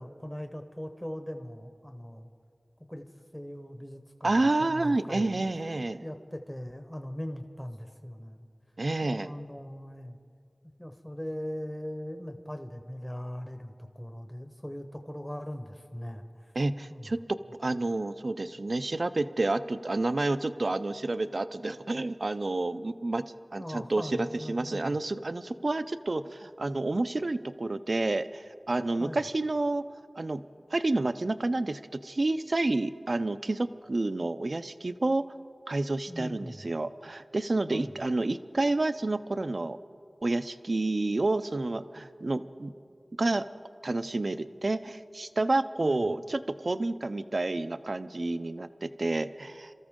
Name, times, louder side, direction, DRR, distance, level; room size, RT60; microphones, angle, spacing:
voice 1, 0.0-2.3 2.9-3.1 3.3-4.3 4.6-8.5 9.0-10.2 10.8-16.5 16.9-17.2 23.6-25.0 29.0-29.2 36.1-36.7 37.7-37.9 45.8-46.0, equal, 10° left, 6 dB, 1.0 m, -40 dB
voice 2, 4.2-6.0 8.8-9.3 16.6-23.3 23.5-24.0 24.5-29.8 30.2-30.4 30.7-35.3 35.7-39.8 40.2-42.7 43.2-43.5 43.8-49.7, right 2 dB, 55° right, 12 dB, 0.5 m, -29 dB
28.0 x 13.5 x 3.7 m, 2.3 s
wide cardioid pair, 60°, 0 cm